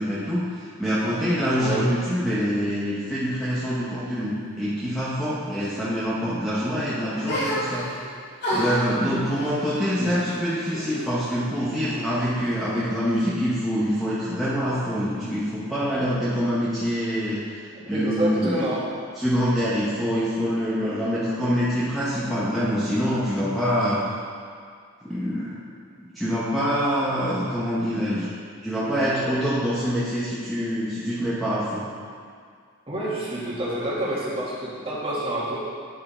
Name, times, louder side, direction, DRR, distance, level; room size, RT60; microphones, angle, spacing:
voice 1, 0.0-7.9 8.5-17.6 17.9-18.7 19.2-24.0 25.0-25.6 26.0-28.3 28.6-31.9, equal, ahead, -10 dB, 0.8 m, -25 dB
sound 1, 7.3-8.1 8.4-11.1 11.4-12.3, equal, 50° left, 2.0 m, -31 dB
voice 2, 17.7-18.8 32.9-35.6, right 1 dB, 25° right, -8 dB, 1.8 m, -28 dB
9.8 x 4.7 x 4.3 m, 2.2 s
head